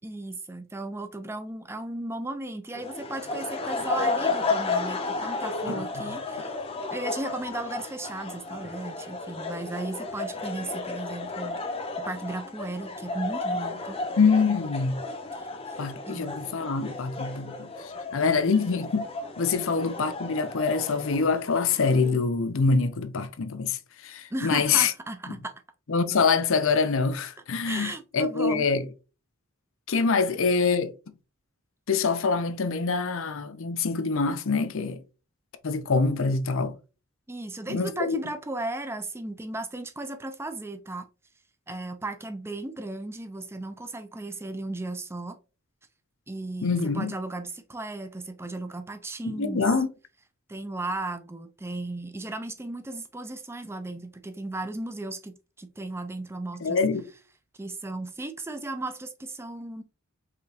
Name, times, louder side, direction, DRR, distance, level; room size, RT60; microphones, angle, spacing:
voice 1, 0.0-6.5 6.9-11.6 12.0-14.0 15.3-15.8 16.1-16.5 18.3-18.6 19.5-19.7 24.3-25.5 27.6-28.7 37.3-41.1 41.7-45.4 46.3-49.7 50.5-56.8 57.6-59.8, right 2 dB, 10° right, 0.5 m, -36 dB
sound 1, 2.7-22.1, left 3 dB, 25° left, 0.7 m, -33 dB
voice 2, 14.2-15.0 15.8-17.7 18.1-19.0 19.4-23.8 24.0-24.9 25.9-28.9 29.9-30.9 31.9-35.0 35.6-36.7 37.7-38.2 46.6-47.1 49.2-49.9 56.6-57.0, left 4 dB, 65° left, 0.6 m, -25 dB
5.0 x 3.5 x 2.8 m
head